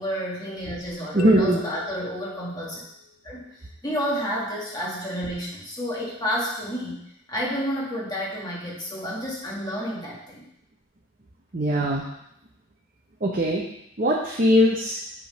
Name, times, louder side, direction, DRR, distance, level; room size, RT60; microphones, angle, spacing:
voice 1, 0.0-2.8 3.2-7.0 7.3-10.5, equal, 20° left, -5 dB, 1.6 m, -30 dB
voice 2, 1.1-1.6 11.5-12.1 13.2-13.7 14.0-15.0, equal, 40° right, -2 dB, 0.8 m, -20 dB
sound 1, 1.2-3.1, left 8 dB, 90° left, 0.7 m, -39 dB
8.4 x 3.8 x 5.1 m, 0.77 s
head